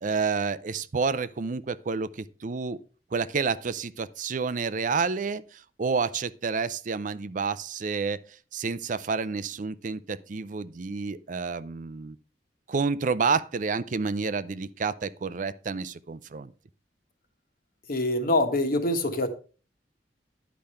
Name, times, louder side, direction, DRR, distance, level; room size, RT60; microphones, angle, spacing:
voice 1, 0.0-2.8 3.1-12.2 12.7-16.5, right 5 dB, 45° right, 0.5 m, -29 dB
voice 2, 17.9-19.3, left 1 dB, 55° left, 1.4 m, -25 dB
10.5 x 5.1 x 5.6 m
head